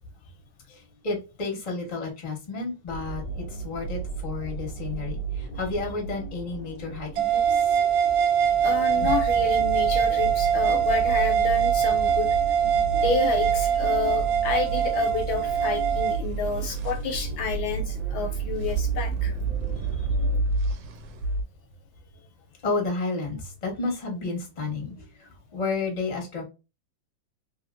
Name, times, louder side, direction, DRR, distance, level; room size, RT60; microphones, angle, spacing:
voice 1, 0.7-7.7 9.0-9.1 22.6-26.4, left 3 dB, 30° left, 0 dB, 0.8 m, -32 dB
sound 1, 2.9-20.4, right 4 dB, 60° left, 0.4 m, -33 dB
sound 2, 7.2-16.2, right 8 dB, 90° right, 0.9 m, -23 dB
voice 2, 8.6-12.4 12.9-19.4, left 6 dB, 75° left, 5 dB, 1.3 m, -30 dB
sound 3, 8.7-12.8 16.1-21.4, right 2 dB, 70° right, 1.2 m, -32 dB
3.5 x 2.8 x 2.4 m, 0.28 s
omnidirectional pair, 2.4 m